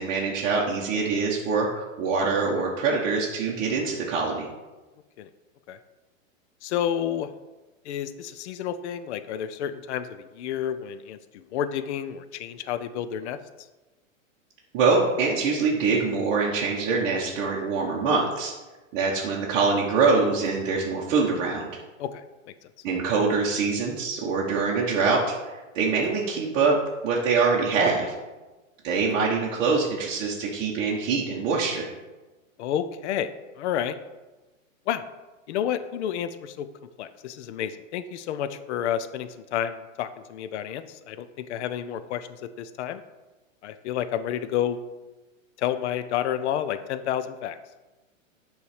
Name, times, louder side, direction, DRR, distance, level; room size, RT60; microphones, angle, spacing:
voice 1, 0.0-4.5 14.7-18.5 18.9-21.7 22.8-26.8 27.0-28.1 28.8-31.9, right 4 dB, 30° right, -4 dB, 0.8 m, -24 dB
voice 2, 6.6-7.3 7.9-11.2 11.5-13.4 22.0-22.2 32.6-33.3 33.6-34.0 34.9-35.1 35.5-36.7 37.0-42.3 42.6-43.0 43.6-44.8 45.6-47.6, left 10 dB, 60° left, 11 dB, 0.5 m, -30 dB
6.8 x 3.2 x 4.9 m, 1.2 s
hypercardioid pair, 145°, 40 cm